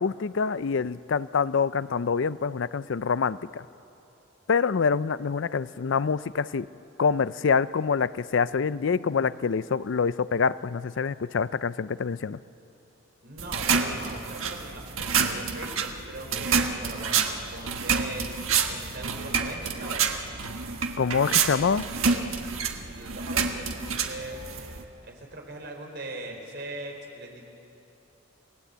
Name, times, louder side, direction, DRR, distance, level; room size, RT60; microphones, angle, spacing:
voice 1, 0.0-3.6 4.5-6.7 7.0-12.4 21.0-21.8, left 5 dB, 65° left, 17 dB, 0.4 m, -26 dB
voice 2, 13.2-18.4 18.7-20.1 22.9-24.4 25.0-27.4, right 2 dB, 55° right, 2 dB, 4.0 m, -40 dB
sound 1, 13.4-24.8, right 6 dB, 80° right, 1.5 m, -28 dB
28.5 x 18.5 x 8.1 m, 2.8 s
head